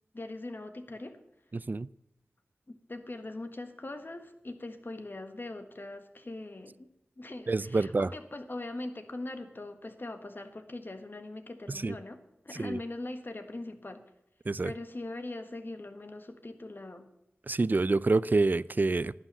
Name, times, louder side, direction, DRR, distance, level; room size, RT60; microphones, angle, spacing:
voice 1, 0.1-1.2 2.7-6.9 7.2-12.2 12.4-14.0 14.6-17.1, left 2 dB, 50° left, 1.5 m, -41 dB
voice 2, 1.5-1.9 7.5-8.1 11.7-11.9 12.6-12.8 14.5-14.7 17.5-19.1, right 3 dB, 45° right, 0.4 m, -27 dB
11.5 x 9.7 x 6.9 m
wide cardioid pair, 50°, 4 cm